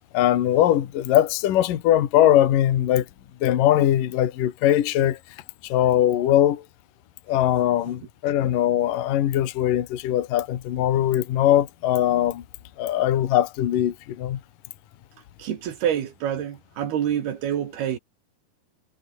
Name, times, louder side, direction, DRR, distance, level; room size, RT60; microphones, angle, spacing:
voice 1, 0.1-3.1 3.4-5.2 5.6-6.6 7.3-12.4 12.8-14.4, left 12 dB, 60° left, 3.0 m, -21 dB
voice 2, 15.4-18.0, right 9 dB, 70° right, 3.9 m, -27 dB
omnidirectional pair, 4.9 m